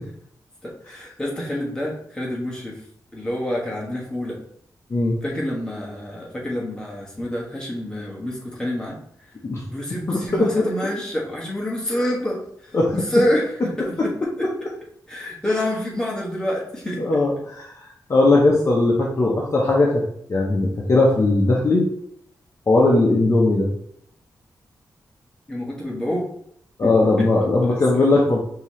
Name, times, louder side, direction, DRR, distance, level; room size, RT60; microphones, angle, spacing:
voice 1, 0.6-2.8 3.1-4.4 5.2-9.0 9.7-14.5 15.1-17.0 25.5-26.3 26.8-26.9 27.2-27.3 27.6-28.1, left 1 dB, 10° left, -4 dB, 1.2 m, -27 dB
voice 2, 10.1-10.7 12.7-12.9 17.0-17.7 18.1-20.0 20.3-21.9 22.7-23.7 26.8-28.4, left 2 dB, 40° left, -3 dB, 0.7 m, -18 dB
5.4 x 2.8 x 3.1 m, 0.69 s
wide cardioid pair, 135°, 7 cm